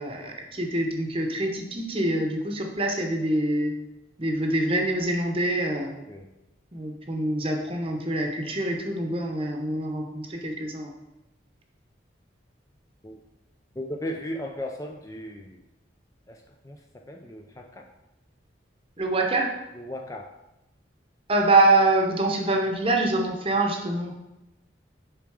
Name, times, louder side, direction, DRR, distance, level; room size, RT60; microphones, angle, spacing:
voice 1, 0.0-3.7 4.2-6.0 6.7-10.9 19.0-19.5 21.3-24.2, right 2 dB, 30° right, 2 dB, 0.8 m, -25 dB
voice 2, 13.8-15.6 16.3-16.8 17.1-17.8 19.7-20.3, left 1 dB, 15° left, 2 dB, 0.4 m, -36 dB
7.1 x 3.6 x 4.8 m, 0.96 s
head